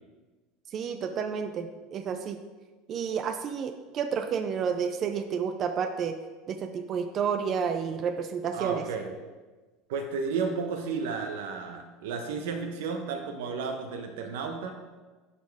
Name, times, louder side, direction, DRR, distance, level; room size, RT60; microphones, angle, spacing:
voice 1, 0.7-2.4 2.9-6.2 6.5-8.8, right 6 dB, 30° right, 6 dB, 0.4 m, -30 dB
voice 2, 8.5-9.1 9.9-14.8, right 5 dB, 85° right, 5 dB, 1.0 m, -33 dB
11.0 x 4.3 x 3.5 m, 1.3 s
cardioid pair, 160°, 0 cm